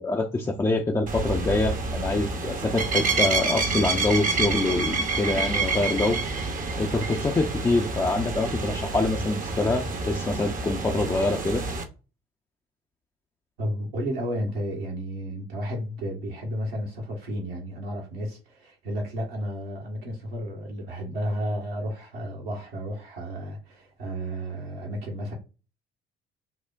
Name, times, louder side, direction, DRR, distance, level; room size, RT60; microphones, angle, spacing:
voice 1, 0.0-6.2 6.8-11.6, left 2 dB, 10° left, 0.5 m, -25 dB
sound 1, 1.1-11.8, right 3 dB, 25° right, 0.7 m, -28 dB
voice 2, 13.6-25.3, equal, 70° right, 1.3 m, -32 dB
5.6 x 2.1 x 2.4 m
figure-of-eight pair, 50°, 30 cm